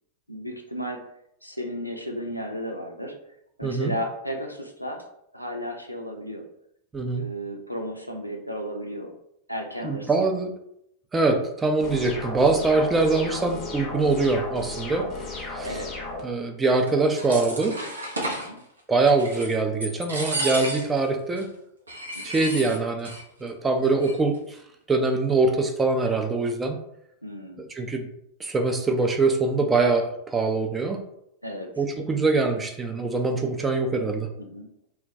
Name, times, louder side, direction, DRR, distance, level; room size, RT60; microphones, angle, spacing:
voice 1, 0.3-1.0 1.4-3.1 3.6-5.0 5.3-6.5 7.2-9.2 9.5-10.2 15.6-16.1 18.3-18.6 22.1-22.4 27.2-27.6 31.4-31.7 32.6-32.7 34.4-34.7, equal, 90° left, 3 dB, 0.3 m, -34 dB
voice 2, 3.6-3.9 6.9-7.2 9.8-10.5 11.1-15.8 16.2-17.8 18.9-21.5 22.2-23.1 23.4-24.6 24.9-26.8 27.6-28.1 28.4-31.0 31.8-34.3, right 3 dB, 15° right, 3 dB, 0.3 m, -23 dB
sound 1, 11.8-16.2, left 2 dB, 30° left, 0.6 m, -34 dB
sound 2, 16.9-18.5 19.0-19.6 19.8-21.0 21.4-21.5 21.9-23.2 23.5-23.6 23.8-24.4, right 1 dB, 80° right, 0.5 m, -32 dB
2.2 x 2.1 x 2.6 m, 0.77 s
figure-of-eight pair, 90°, 0 cm